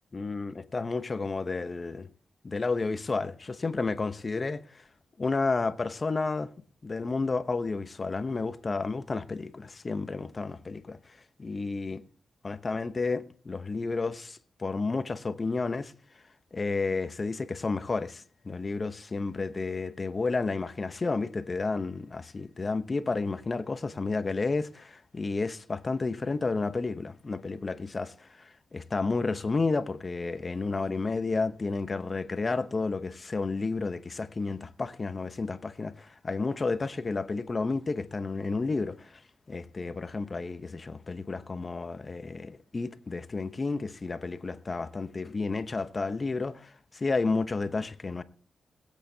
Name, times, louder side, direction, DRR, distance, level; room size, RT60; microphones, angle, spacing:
voice 1, 0.1-2.1 2.4-4.8 5.2-6.5 6.8-11.1 11.4-12.0 12.4-15.9 16.5-39.2 39.5-48.2, left 3 dB, 35° left, 0.8 m, -31 dB
21.0 x 8.3 x 2.8 m
cardioid pair, 80°, 0 cm